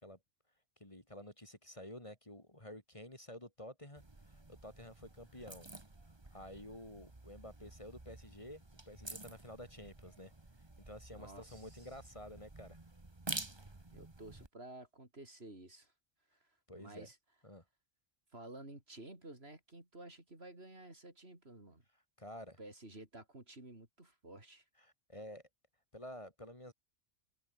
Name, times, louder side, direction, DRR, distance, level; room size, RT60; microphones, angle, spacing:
voice 1, 0.8-5.7 6.0-10.3 10.9-12.8 16.7-17.1 17.4-17.6 22.2-22.6 24.8-25.4 25.9-26.7, left 1 dB, 25° left, 3.5 m, -51 dB
sound 1, 4.0-14.5, right 2 dB, 20° right, 1.7 m, -50 dB
voice 2, 11.1-11.9 13.9-15.9 16.4-17.2 18.3-21.8 22.6-24.7, right 2 dB, 60° right, 5.2 m, -53 dB
open air
omnidirectional pair, 1.2 m